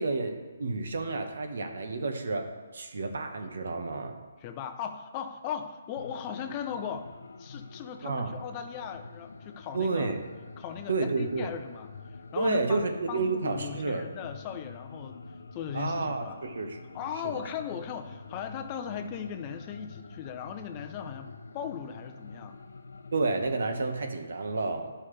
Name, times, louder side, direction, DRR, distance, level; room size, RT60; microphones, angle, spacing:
voice 1, 0.0-2.5 2.7-4.2 8.0-8.3 9.7-10.2 10.9-11.5 12.4-14.0 15.7-16.8 23.1-24.9, right 3 dB, 70° right, 4 dB, 1.2 m, -30 dB
voice 2, 4.4-7.1 7.4-10.2 10.6-16.4 16.9-22.6, left 8 dB, 25° left, 7 dB, 0.5 m, -38 dB
sound 1, 6.0-24.0, left 4 dB, 85° left, 0.6 m, -47 dB
11.0 x 5.6 x 3.3 m, 1.4 s
hypercardioid pair, 160°, 0 cm